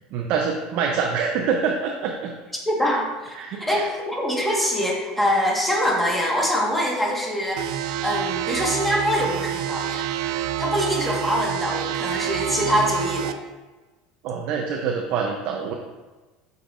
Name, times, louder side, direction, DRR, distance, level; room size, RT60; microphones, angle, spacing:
voice 1, 0.1-2.3 3.4-3.8 12.5-12.7 14.2-15.7, right 6 dB, 60° right, 0 dB, 0.7 m, -26 dB
voice 2, 2.6-10.1 10.6-13.3, equal, 5° left, -3 dB, 1.5 m, -24 dB
sound 1, 7.6-13.3, right 11 dB, 85° right, 0.4 m, -28 dB
7.7 x 6.6 x 2.6 m, 1.2 s
supercardioid pair, 130°, 3 cm